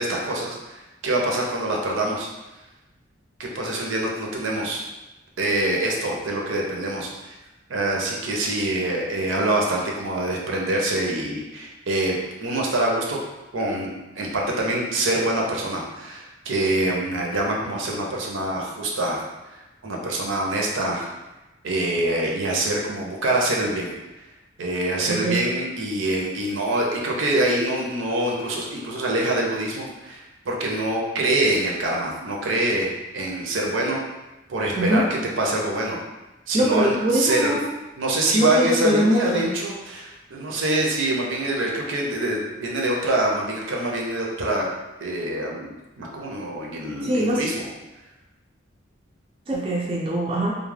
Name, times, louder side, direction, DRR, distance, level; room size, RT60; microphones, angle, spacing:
voice 1, 0.0-2.3 3.4-4.8 5.4-7.4 7.7-13.2 13.5-19.2 19.5-21.1 21.6-23.9 24.6-34.0 34.5-35.0 35.4-36.0 36.5-37.6 38.0-44.7 45.0-47.7, right 1 dB, 80° right, -1 dB, 0.5 m, -25 dB
voice 2, 25.1-25.4 34.8-35.0 36.5-37.7 38.3-39.5 47.0-47.4 49.5-50.6, right 1 dB, 30° right, -3 dB, 0.3 m, -22 dB
2.2 x 2.0 x 3.2 m, 1.0 s
head